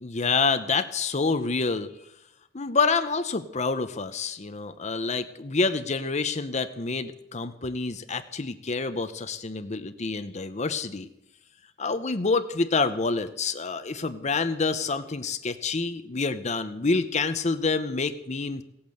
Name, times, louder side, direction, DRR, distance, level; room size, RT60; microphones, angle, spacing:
voice 1, 0.0-1.9 2.5-11.1 11.8-18.6, left 4 dB, 35° left, 10 dB, 0.8 m, -27 dB
17.0 x 8.7 x 7.8 m, 0.80 s
head